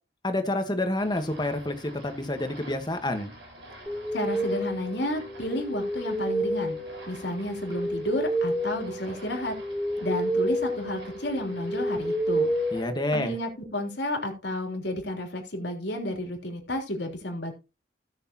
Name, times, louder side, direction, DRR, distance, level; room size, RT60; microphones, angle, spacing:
voice 1, 0.2-3.3 12.7-13.3, left 1 dB, 25° left, 7 dB, 1.4 m, -28 dB
the rain, 1.0-12.9, right 1 dB, 80° right, 7.2 m, -49 dB
sound 1, 3.9-13.5, equal, ahead, 0.9 m, -30 dB
voice 2, 4.1-6.8 7.1-9.5 10.0-12.5 13.1-17.5, left 1 dB, 75° left, 2 dB, 3.4 m, -31 dB
17.0 x 6.6 x 3.0 m, 0.29 s
head